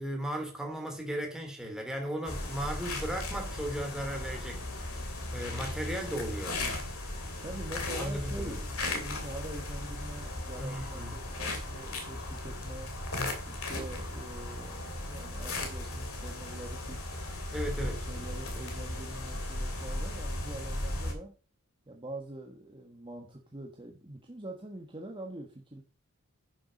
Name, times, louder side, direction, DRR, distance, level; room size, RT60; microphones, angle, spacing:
voice 1, 0.0-4.6 4.9-5.0 5.3-6.6 8.0-8.6 10.6-11.2 17.5-18.0, right 1 dB, 5° right, 2.8 m, -36 dB
sound 1, 2.3-21.1, left 2 dB, 70° left, 2.7 m, -36 dB
voice 2, 7.4-12.9 13.4-17.0 17.8-21.3 21.9-25.8, right 1 dB, 20° right, 1.3 m, -44 dB
10.5 x 6.9 x 5.2 m
head